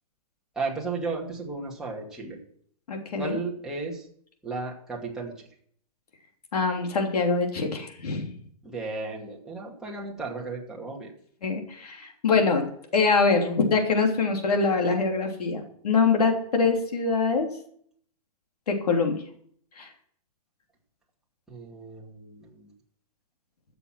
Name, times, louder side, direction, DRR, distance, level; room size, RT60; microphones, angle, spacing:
voice 1, 0.6-2.4 3.2-4.0 4.4-5.5 8.6-11.1 21.5-22.7, right 3 dB, 5° right, -4 dB, 2.3 m, -34 dB
voice 2, 2.9-3.4 6.5-8.3 11.4-12.6 12.9-17.5 18.7-19.2 19.8-19.9, left 4 dB, 80° left, 2 dB, 3.3 m, -24 dB
14.0 x 7.0 x 6.0 m, 0.62 s
hypercardioid pair, 160°, 19 cm